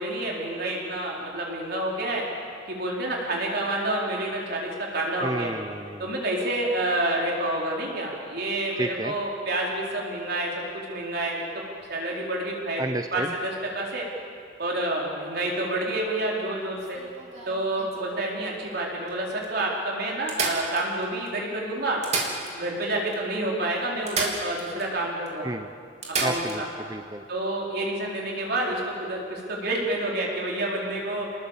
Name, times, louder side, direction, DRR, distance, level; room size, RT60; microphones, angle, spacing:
voice 1, 0.0-2.2 2.7-5.6 6.0-11.4 11.9-12.8 13.1-14.1 14.6-17.0 17.5-22.0 22.5-25.5 26.2-26.7 27.3-31.3, right 1 dB, 55° right, -2 dB, 4.4 m, -28 dB
voice 2, 5.2-6.1 8.8-9.1 12.8-13.3 25.4-25.7 26.2-27.3, right 2 dB, 20° right, 8 dB, 0.8 m, -31 dB
sound 1, 16.8-18.4 19.1-19.2 19.4-19.5 20.3-21.3 21.9-22.9 23.1-23.2 24.1-24.9 25.3-25.4 26.0-26.6 28.6-28.7, right 4 dB, 35° right, 3.5 m, -31 dB
29.5 x 20.0 x 7.5 m, 2.3 s
head